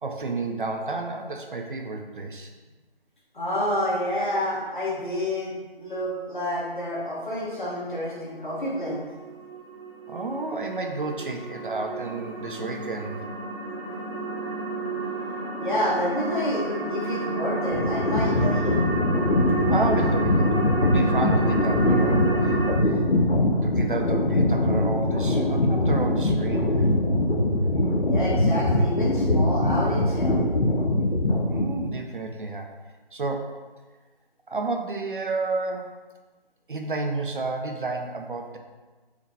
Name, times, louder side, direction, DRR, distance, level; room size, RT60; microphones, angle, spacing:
voice 1, 0.0-2.5 10.1-13.3 19.7-23.0 23.6-26.9 31.5-32.7 33.1-33.6 34.5-35.9 36.7-38.6, right 3 dB, 60° right, 3 dB, 0.5 m, -31 dB
voice 2, 3.3-5.5 5.8-9.0 15.6-18.9 28.0-30.4, left 1 dB, 55° left, -6 dB, 1.4 m, -28 dB
sound 1, 7.4-22.7, right 2 dB, 75° right, 1.1 m, -31 dB
sound 2, 17.7-31.9, left 1 dB, 85° left, 0.7 m, -22 dB
4.7 x 2.1 x 3.4 m, 1.3 s
figure-of-eight pair, 165°, 30 cm